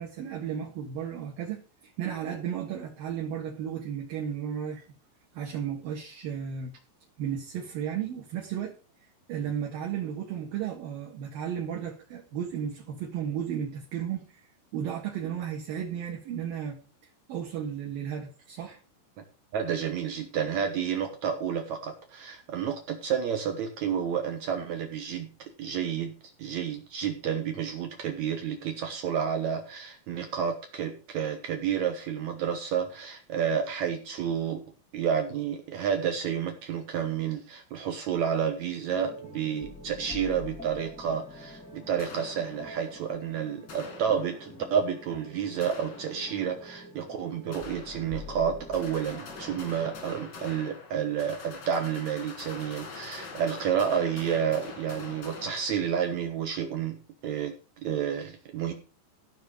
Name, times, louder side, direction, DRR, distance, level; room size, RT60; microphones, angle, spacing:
voice 1, 0.0-4.8 5.3-6.8 7.2-8.7 9.3-14.4 14.7-16.8 17.3-18.8, right 8 dB, 60° right, 3.0 m, -34 dB
voice 2, 19.5-25.3 25.6-26.1 26.4-34.6 34.9-57.0 57.2-57.5 57.8-58.7, right 8 dB, 90° right, 1.6 m, -30 dB
sound 1, 38.9-50.0, left 2 dB, 5° left, 0.9 m, -46 dB
sound 2, 42.0-43.0 43.7-44.7 45.6-46.6 47.5-48.4 48.7-56.2, left 4 dB, 50° left, 1.5 m, -44 dB
14.5 x 6.3 x 5.1 m
omnidirectional pair, 5.2 m